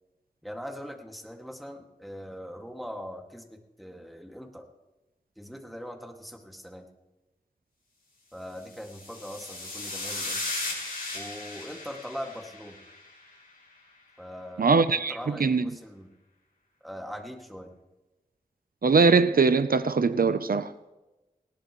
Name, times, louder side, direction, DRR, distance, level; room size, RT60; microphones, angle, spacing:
voice 1, 0.4-4.6 5.4-6.9 8.3-10.6 11.1-12.8 14.2-16.1 16.8-17.7, equal, ahead, 2 dB, 2.0 m, -41 dB
sound 1, 8.7-13.2, left 2 dB, 80° left, 5.5 m, -36 dB
voice 2, 14.6-15.6 18.8-20.9, right 4 dB, 75° right, 12 dB, 0.6 m, -22 dB
19.5 x 18.0 x 3.1 m, 1.0 s
wide cardioid pair, 70°, 15 cm